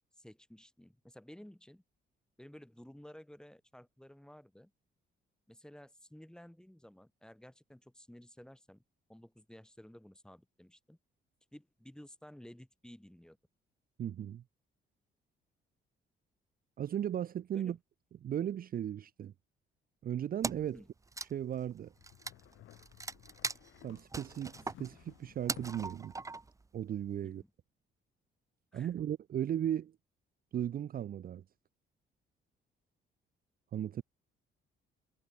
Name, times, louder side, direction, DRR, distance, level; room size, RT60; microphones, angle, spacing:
voice 1, 0.2-1.8 2.4-4.7 5.5-8.8 9.1-11.0 11.5-13.4 17.5-17.8 20.7-20.9 27.2-27.5 28.7-29.1, equal, 5° left, 3.7 m, -54 dB
voice 2, 14.0-14.4 16.8-17.8 18.2-19.3 20.0-20.8 21.3-21.9 23.8-26.1 26.7-27.4 28.7-29.9 30.5-31.4 33.7-34.0, right 10 dB, 50° right, 0.5 m, -36 dB
Wood, 20.4-20.8 21.0-26.6, right 3 dB, 15° right, 0.7 m, -40 dB
sound 1, 22.0-26.0, left 14 dB, 85° left, 1.8 m, -57 dB
cardioid pair, 90°, 20 cm